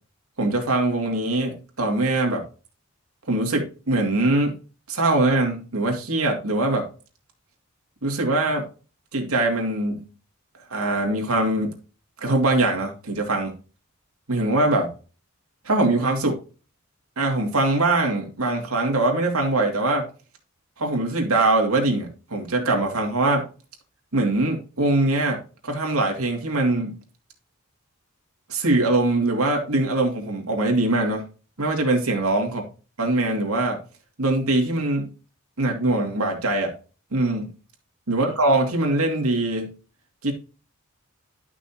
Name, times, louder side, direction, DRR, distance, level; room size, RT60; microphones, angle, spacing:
voice 1, 0.4-2.4 3.3-4.5 4.9-6.9 8.0-8.7 9.1-10.0 10.7-11.7 12.2-13.5 14.3-14.9 15.6-16.4 17.2-20.1 20.8-23.5 24.1-27.0 28.5-31.2 31.6-32.6 33.0-33.8 34.2-35.1 35.6-36.7 37.1-37.5 38.1-39.7 40.2-40.3, right 2 dB, 85° right, 1 dB, 2.5 m, -22 dB
11.5 x 6.1 x 2.9 m, 0.35 s
head